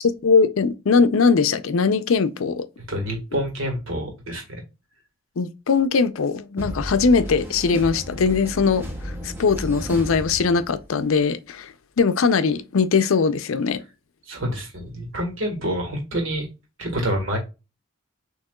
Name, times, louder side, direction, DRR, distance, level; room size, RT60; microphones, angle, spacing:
voice 1, 0.0-2.7 5.4-8.8 9.2-13.8, left 5 dB, 85° left, 0.5 m, -20 dB
voice 2, 2.9-4.6 14.3-16.5 16.8-17.4, equal, 70° right, 1.7 m, -27 dB
sound 1, 6.6-11.0, equal, 10° right, 0.7 m, -33 dB
6.4 x 3.0 x 2.3 m
head